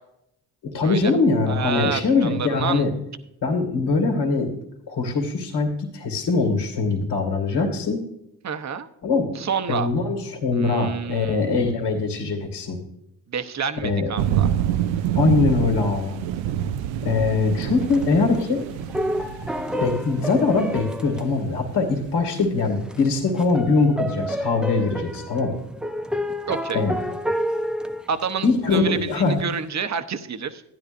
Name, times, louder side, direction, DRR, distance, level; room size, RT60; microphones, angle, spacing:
voice 1, 0.6-2.9 3.4-4.5 4.9-8.0 9.0-9.3 9.7-12.8 13.8-14.1 15.1-16.2 17.0-18.6 19.8-25.6 26.7-26.9 28.4-29.4, left 4 dB, 65° left, 2 dB, 2.3 m, -22 dB
voice 2, 1.5-2.8 8.4-8.9 9.3-9.9 10.6-11.5 13.3-14.5 26.5-26.8 28.1-30.6, right 6 dB, 40° right, 9 dB, 0.9 m, -29 dB
sound 1, 14.2-22.4, right 10 dB, 90° right, 0.6 m, -27 dB
sound 2, 17.6-22.0 22.3-22.4 22.8-29.4, equal, ahead, 0.4 m, -30 dB
13.5 x 10.0 x 2.6 m, 0.81 s
supercardioid pair, 65°, 44 cm